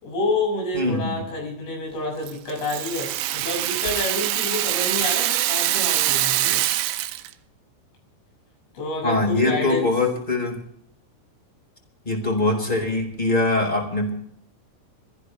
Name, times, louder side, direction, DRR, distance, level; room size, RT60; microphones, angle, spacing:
voice 1, 0.0-6.6 8.8-9.9, left 2 dB, 75° left, -1 dB, 9.0 m, -28 dB
voice 2, 0.7-1.1 9.0-10.6 12.0-14.1, left 2 dB, 10° left, 1 dB, 4.1 m, -22 dB
Rattle (instrument), 2.3-7.3, right 14 dB, 80° right, 3.2 m, -24 dB
26.0 x 15.5 x 3.3 m, 0.68 s
omnidirectional pair, 5.7 m